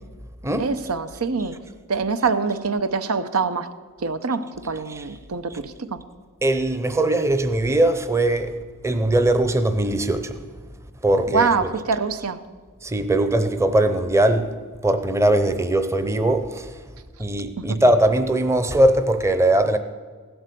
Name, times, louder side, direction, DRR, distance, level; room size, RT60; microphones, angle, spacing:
voice 1, 0.6-1.6 1.9-3.7 4.0-6.0 11.3-12.4 17.6-17.8, right 4 dB, 90° right, 0.7 m, -24 dB
voice 2, 6.4-8.5 8.8-10.4 11.0-11.7 12.8-14.5 14.8-16.7 17.2-19.8, right 1 dB, 15° right, 0.7 m, -20 dB
16.0 x 8.0 x 6.8 m
head